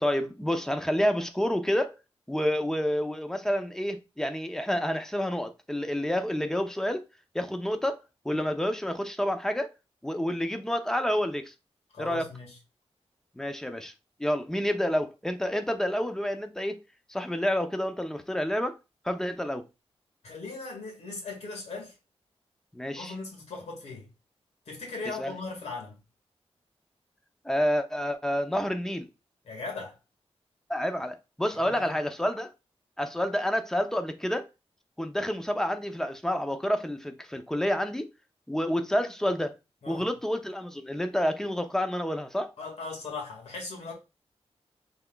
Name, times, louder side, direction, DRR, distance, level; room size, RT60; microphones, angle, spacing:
voice 1, 0.0-1.9 2.3-7.0 7.3-9.7 10.0-11.5 12.0-12.3 13.4-13.9 14.2-16.8 17.1-18.8 19.0-19.6 22.7-23.1 25.2-25.3 27.4-29.1 30.7-32.5 33.0-34.5 35.0-38.1 38.5-39.6 39.9-42.5, equal, 5° left, 0.6 m, -29 dB
voice 2, 11.9-12.6 20.2-22.0 22.9-24.1 24.7-26.0 29.4-30.0 31.6-31.9 39.8-40.1 42.6-43.9, left 3 dB, 80° left, 1.8 m, -38 dB
5.8 x 3.4 x 2.3 m
wide cardioid pair, 100°, 11 cm